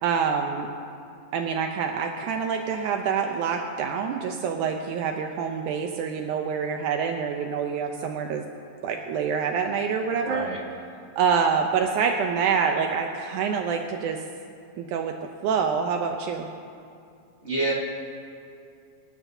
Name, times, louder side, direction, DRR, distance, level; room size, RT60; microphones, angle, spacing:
voice 1, 0.0-0.7 1.3-8.4 8.8-10.5 11.2-14.2 14.8-15.1 15.4-16.5, right 6 dB, 80° right, 3 dB, 2.1 m, -26 dB
voice 2, 10.2-10.6 17.4-17.7, right 2 dB, 30° right, -4 dB, 1.2 m, -27 dB
25.0 x 13.0 x 2.7 m, 2.5 s
omnidirectional pair, 3.7 m